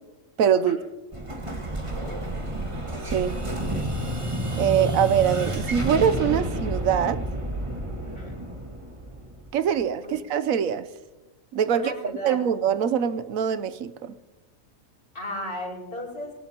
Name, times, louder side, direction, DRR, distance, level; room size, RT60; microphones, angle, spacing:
voice 1, 0.4-0.8 3.1-3.4 4.6-7.2 9.5-10.9 11.5-11.9 12.2-14.1, right 8 dB, 80° right, 13 dB, 1.1 m, -23 dB
Explosion, 1.1-9.8, right 1 dB, 25° right, 1.8 m, -30 dB
voice 2, 1.9-2.3 8.0-8.4 10.0-10.2 11.7-12.6 15.1-16.3, left 1 dB, 45° left, -3 dB, 5.7 m, -35 dB
24.0 x 18.5 x 2.9 m, 1.1 s
omnidirectional pair, 1.4 m